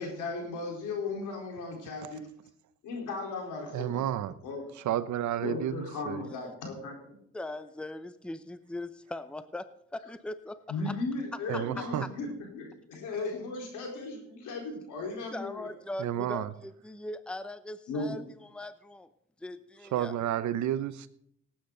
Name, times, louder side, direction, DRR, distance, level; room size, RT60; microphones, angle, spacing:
voice 1, 0.0-2.3 2.8-4.0 4.4-4.6 5.4-7.2 10.7-12.3 12.5-15.7 16.0-16.1 17.9-18.2, left 3 dB, 85° left, 4.2 m, -36 dB
voice 2, 3.7-4.4 4.7-6.2 11.5-12.1 16.0-16.5 19.8-21.1, right 11 dB, 70° right, 0.9 m, -31 dB
voice 3, 7.3-9.7 9.9-10.6 15.3-18.2 18.5-19.1 19.4-20.1, left 1 dB, 5° left, 0.7 m, -40 dB
18.0 x 8.8 x 3.9 m
cardioid pair, 90°, 30 cm